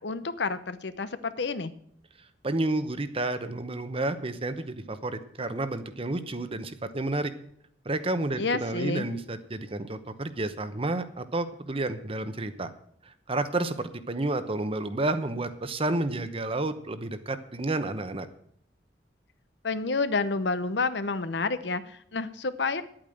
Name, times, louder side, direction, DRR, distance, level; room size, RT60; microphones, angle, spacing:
voice 1, 0.0-1.7 8.4-9.1 19.6-22.8, left 3 dB, 75° left, 13 dB, 0.8 m, -29 dB
voice 2, 2.4-7.3 7.8-12.7 13.0-18.3, right 2 dB, 30° right, 11 dB, 0.9 m, -30 dB
10.5 x 8.8 x 7.7 m, 0.67 s
head